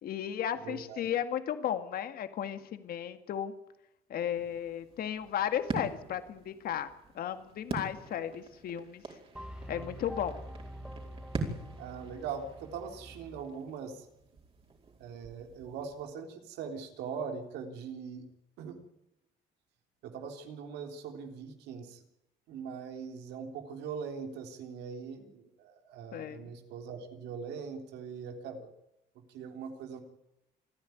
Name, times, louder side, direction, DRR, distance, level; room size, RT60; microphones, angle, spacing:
voice 1, 0.0-3.5 4.1-9.2 9.7-10.4 26.1-26.5, left 9 dB, 60° left, 9 dB, 2.0 m, -35 dB
voice 2, 0.6-1.0 11.8-14.1 15.0-18.3 18.6-18.8 20.0-22.0 22.5-28.7 29.3-30.0, right 6 dB, 85° right, 5 dB, 3.6 m, -41 dB
sound 1, 4.3-16.1, right 3 dB, 35° right, 4.7 m, -44 dB
sound 2, 9.3-13.6, equal, 5° right, 1.8 m, -46 dB
28.0 x 10.5 x 9.4 m, 0.89 s
cardioid pair, 110°, 17 cm